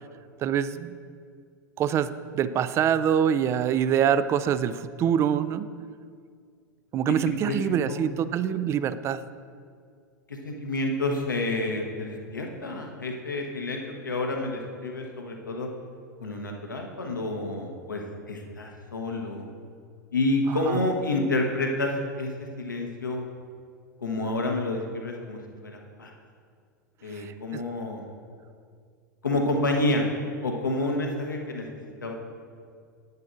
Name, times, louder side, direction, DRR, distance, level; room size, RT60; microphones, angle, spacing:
voice 1, 0.4-1.0 1.8-2.1 2.3-5.7 6.9-9.2 20.5-20.9 27.1-27.6, right 9 dB, 25° right, 14 dB, 0.3 m, -25 dB
voice 2, 7.4-8.0 10.3-15.7 16.2-19.5 20.1-21.9 22.2-23.2 24.0-26.1 27.0-28.0 29.2-30.1 30.4-31.7 32.0-32.1, left 2 dB, 80° left, 1 dB, 1.1 m, -29 dB
9.6 x 9.4 x 2.6 m, 2.1 s
figure-of-eight pair, 85°, 10 cm